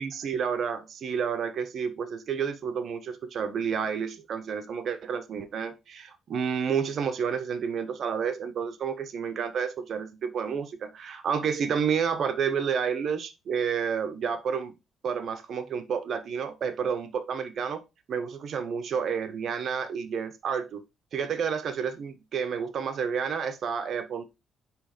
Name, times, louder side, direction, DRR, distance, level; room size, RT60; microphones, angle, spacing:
voice 1, 0.0-14.8 15.0-17.8 18.1-20.8 21.1-24.3, right 6 dB, 60° right, 1.1 m, -30 dB
10.5 x 3.4 x 5.0 m
cardioid pair, 90°, 0 cm